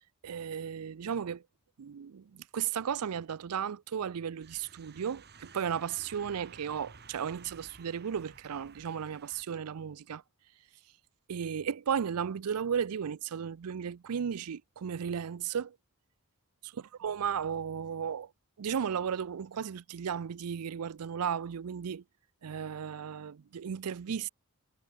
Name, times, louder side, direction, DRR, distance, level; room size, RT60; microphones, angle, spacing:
voice 1, 0.2-1.4 1.8-10.2 11.3-15.8 17.0-18.3 18.6-22.0 22.4-24.3, right 7 dB, 90° right, 0.5 m, -35 dB
sound 1, 4.4-9.4, right 5 dB, 50° right, 2.3 m, -54 dB
head